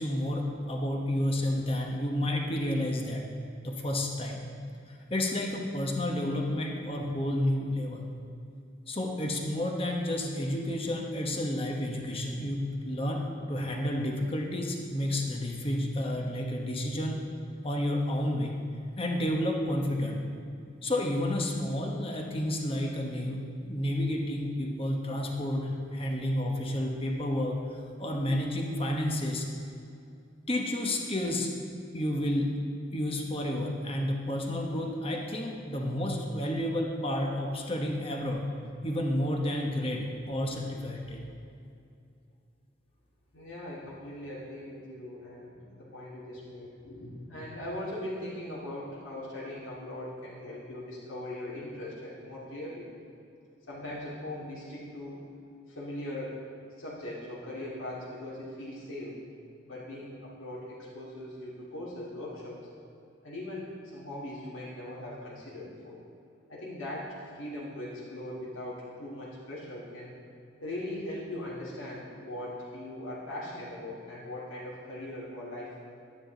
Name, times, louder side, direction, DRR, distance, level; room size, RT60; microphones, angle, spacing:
voice 1, 0.0-3.3 3.6-4.5 4.9-8.0 8.9-13.2 13.5-17.2 17.6-18.5 19.0-20.3 20.8-27.6 28.0-29.5 30.5-31.5 31.9-32.5 32.9-38.5 38.8-41.2, left 1 dB, 25° left, 1 dB, 1.0 m, -30 dB
voice 2, 43.3-52.9 53.7-55.2 55.7-56.4 56.8-59.2 59.6-62.7 63.2-66.0 66.5-70.1 70.6-75.8, left 1 dB, 90° left, -8 dB, 2.3 m, -40 dB
11.0 x 9.7 x 3.9 m, 2.5 s
head